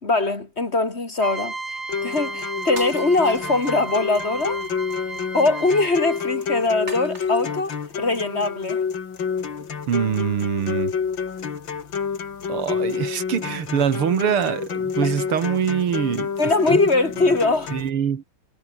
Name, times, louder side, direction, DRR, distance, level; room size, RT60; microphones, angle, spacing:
voice 1, 0.0-4.6 5.3-8.8 15.0-15.1 16.4-17.7, left 3 dB, 30° left, 3.4 m, -22 dB
sound 1, 1.2-6.4, right 3 dB, 60° right, 5.9 m, -34 dB
sound 2, 1.9-17.9, left 6 dB, 65° left, 3.0 m, -28 dB
sound 3, 2.7-4.1 6.9-7.8, right 2 dB, 30° right, 6.3 m, -40 dB
voice 2, 9.9-10.9 12.5-16.8 17.7-18.2, right 8 dB, 90° right, 2.7 m, -24 dB
omnidirectional pair, 2.3 m